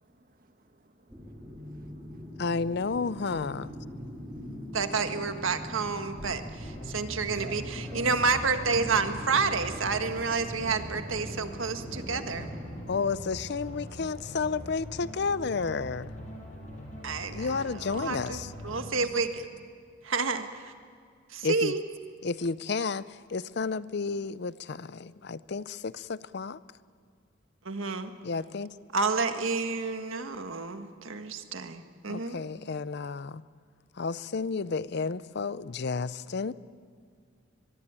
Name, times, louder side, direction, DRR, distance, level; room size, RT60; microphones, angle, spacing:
voice 1, 0.0-2.4 3.9-4.8 6.8-7.0 7.4-7.6 7.9-8.1 9.3-9.6 11.5-12.1, right 3 dB, 45° right, 7 dB, 1.6 m, -54 dB
sound 1, 1.1-13.0, equal, 10° right, 3.9 m, -42 dB
voice 2, 2.4-3.7 12.9-16.1 17.3-18.5 21.4-21.7 22.2-26.6 28.2-28.7 32.1-33.4 33.9-36.5, left 4 dB, 55° left, 17 dB, 0.5 m, -31 dB
voice 3, 4.7-12.5 17.0-19.4 20.0-20.7 21.3-21.8 27.6-28.1 28.9-32.4, right 4 dB, 90° right, 8 dB, 1.6 m, -30 dB
sound 2, 6.6-18.9, equal, 40° left, 6.6 m, -42 dB
22.5 x 22.5 x 8.9 m, 2.2 s
head